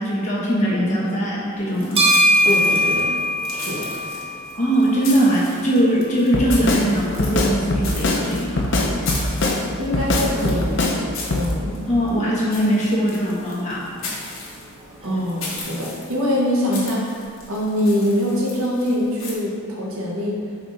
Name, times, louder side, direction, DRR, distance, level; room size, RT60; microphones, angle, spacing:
voice 1, 0.0-2.0 4.5-8.7 11.9-13.8, right 1 dB, 35° left, -6 dB, 1.1 m, -21 dB
sound 1, 1.6-15.4, equal, 25° right, 0.6 m, -26 dB
sound 2, 1.7-19.3, left 3 dB, 70° left, 1.4 m, -36 dB
voice 2, 2.4-3.2 3.5-3.9 9.8-10.8 11.3-11.8 15.0-17.1 17.5-20.4, left 1 dB, 75° right, -3 dB, 1.2 m, -23 dB
Drum kit, 6.3-6.9 7.2-8.2 8.6-9.6 9.9-11.0 11.3-11.5, left 2 dB, 55° left, 0.6 m, -21 dB
5.2 x 4.6 x 3.9 m, 2.1 s
head